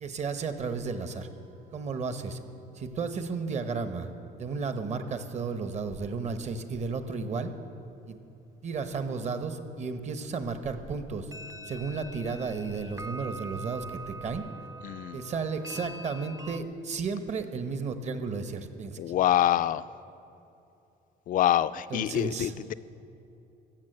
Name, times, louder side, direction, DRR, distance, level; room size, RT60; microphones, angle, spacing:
voice 1, 0.0-1.3 1.7-2.4 2.7-4.1 4.4-7.5 8.1-8.2 8.6-11.3 11.7-14.4 15.1-19.0 21.9-22.5, right 4 dB, 45° right, 9 dB, 1.0 m, -33 dB
sound 1, 0.9-2.8 3.1-3.2 3.5-3.6 10.5-10.6 11.3-16.6, right 2 dB, 20° right, 0.4 m, -44 dB
voice 2, 14.8-15.2 19.0-19.9 21.3-22.7, left 12 dB, 55° left, 15 dB, 0.4 m, -26 dB
14.5 x 6.9 x 7.8 m, 2.8 s
cardioid pair, 110°, 17 cm